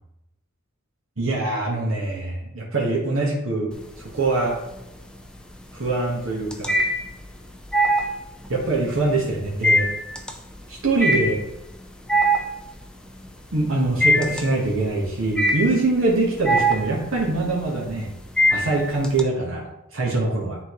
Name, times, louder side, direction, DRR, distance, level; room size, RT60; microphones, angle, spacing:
voice 1, 1.2-3.7 4.0-4.6 5.7-6.7 8.5-9.9 10.7-11.4 13.5-18.1 18.5-20.6, right 2 dB, 80° right, -3 dB, 1.5 m, -23 dB
sound 1, 3.7-4.4 4.7-19.2, equal, 5° left, 0.6 m, -23 dB
10.0 x 3.9 x 3.1 m, 0.88 s
head